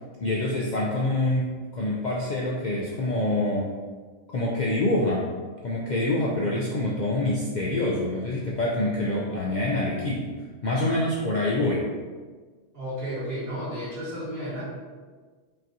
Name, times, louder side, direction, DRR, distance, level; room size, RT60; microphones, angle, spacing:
voice 1, 0.2-3.7 4.3-5.3 5.6-10.3 10.6-11.8, left 1 dB, 65° left, -4 dB, 0.4 m, -26 dB
voice 2, 12.7-14.6, equal, 50° right, -10 dB, 1.7 m, -32 dB
4.8 x 2.9 x 2.5 m, 1.5 s
omnidirectional pair, 1.3 m